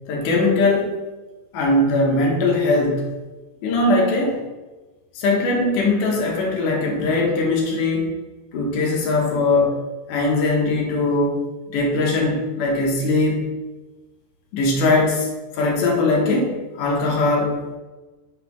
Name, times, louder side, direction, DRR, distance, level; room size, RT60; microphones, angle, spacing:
voice 1, 0.1-1.0 1.5-3.1 3.6-4.4 5.2-8.1 8.5-9.8 10.1-11.4 11.7-13.5 14.5-15.3 15.5-17.8, left 2 dB, 80° left, -1 dB, 2.2 m, -20 dB
5.7 x 2.2 x 3.4 m, 1.2 s
omnidirectional pair, 3.8 m